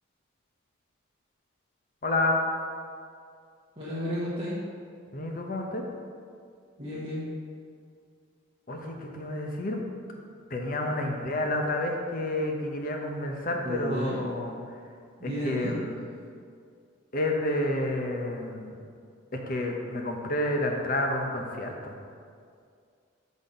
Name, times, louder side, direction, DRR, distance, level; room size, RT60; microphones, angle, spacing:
voice 1, 2.0-2.4 5.1-5.8 8.7-9.8 10.5-14.6 15.2-15.9 17.1-18.7 19.3-21.9, left 1 dB, 45° left, 2 dB, 0.8 m, -29 dB
voice 2, 3.8-4.6 6.8-7.2 13.6-14.2 15.2-15.7, equal, 30° right, -9 dB, 1.1 m, -32 dB
7.4 x 4.1 x 5.1 m, 2.3 s
head